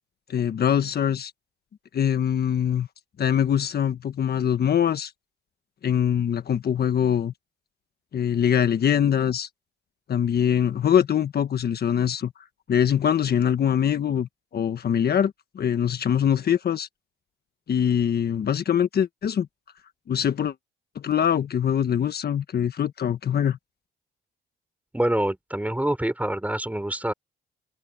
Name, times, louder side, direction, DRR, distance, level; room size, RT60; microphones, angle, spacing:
voice 1, 0.3-1.3 1.9-2.9 3.2-5.1 5.8-7.3 8.1-9.5 10.1-12.3 12.7-16.9 17.7-19.5 20.1-20.5 20.9-23.6, left 9 dB, 55° left, 1.4 m, -23 dB
voice 2, 24.9-27.1, right 1 dB, 5° right, 5.5 m, -26 dB
cardioid pair, 90°, 20 cm